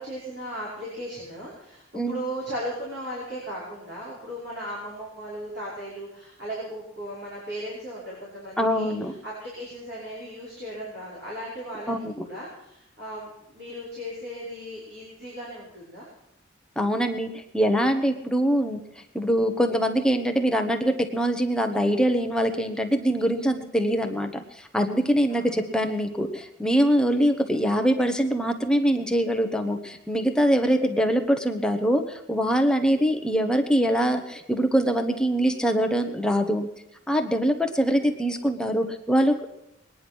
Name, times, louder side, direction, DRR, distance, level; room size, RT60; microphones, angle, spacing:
voice 1, 0.0-8.9 9.2-11.9 12.2-16.1 25.3-25.5, equal, 55° right, -6 dB, 5.5 m, -36 dB
voice 2, 8.6-9.1 11.9-12.2 16.8-18.8 19.1-36.7 37.1-39.5, equal, 5° left, 4 dB, 1.0 m, -23 dB
21.5 x 10.0 x 6.2 m, 0.81 s
head